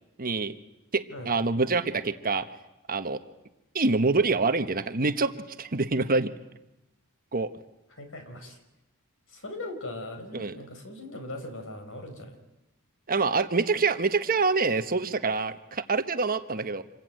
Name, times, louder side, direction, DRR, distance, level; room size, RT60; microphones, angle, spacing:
voice 1, 0.2-0.5 0.9-2.5 2.9-3.2 3.7-5.3 5.6-6.3 7.3-7.5 10.3-10.6 13.1-16.8, right 3 dB, 40° right, 9 dB, 1.2 m, -26 dB
voice 2, 8.0-8.6 9.3-12.4, left 1 dB, 60° left, 6 dB, 5.0 m, -39 dB
27.5 x 22.0 x 9.4 m, 0.95 s
head